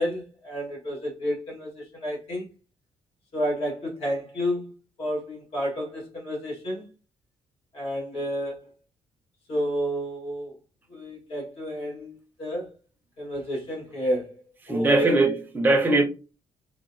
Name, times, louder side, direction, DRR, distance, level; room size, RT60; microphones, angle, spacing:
voice 1, 0.0-2.5 3.3-4.7 5.0-6.9 7.7-8.7 9.5-10.5 10.9-12.7 13.2-14.3 14.7-15.1, equal, 60° left, 1.5 m, -30 dB
voice 2, 14.7-16.0, right 2 dB, 15° right, 0.5 m, -21 dB
3.7 x 2.1 x 2.6 m
cardioid pair, 180°, 12 cm